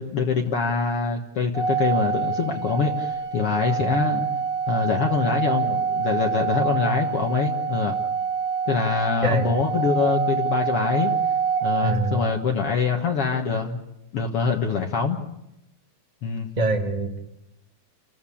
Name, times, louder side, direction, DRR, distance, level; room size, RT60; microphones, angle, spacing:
voice 1, 0.0-4.3 4.7-8.0 8.7-11.1 11.6-13.8 14.1-15.2 16.2-16.5, left 5 dB, 55° left, 2 dB, 2.2 m, -24 dB
Organ, 1.5-12.4, right 6 dB, 75° right, 5.4 m, -26 dB
voice 2, 9.2-9.5 11.8-12.3 16.6-17.2, right 2 dB, 20° right, 2 dB, 1.3 m, -24 dB
29.5 x 14.5 x 8.6 m, 0.89 s
omnidirectional pair, 3.4 m